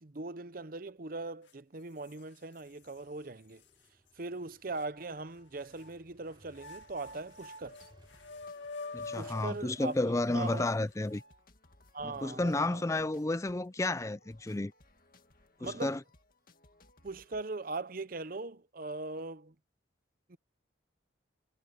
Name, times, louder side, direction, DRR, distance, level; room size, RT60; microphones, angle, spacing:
voice 1, 0.0-3.6 4.2-7.8 9.2-10.7 11.9-12.8 15.6-16.0 17.0-19.5 20.3-20.4, right 3 dB, 45° right, 0.8 m, -40 dB
sound 1, 1.5-1.6 2.0-3.0 3.6-3.7 4.8-5.9 6.5-11.4, left 3 dB, 75° left, 2.3 m, -47 dB
Motorcycle, 2.6-10.9, right 1 dB, 25° right, 3.2 m, -67 dB
sound 2, 6.8-17.5, left 2 dB, 45° left, 2.1 m, -64 dB
voice 2, 8.9-11.2 12.0-14.7 15.6-16.0, left 2 dB, 15° left, 0.4 m, -32 dB
head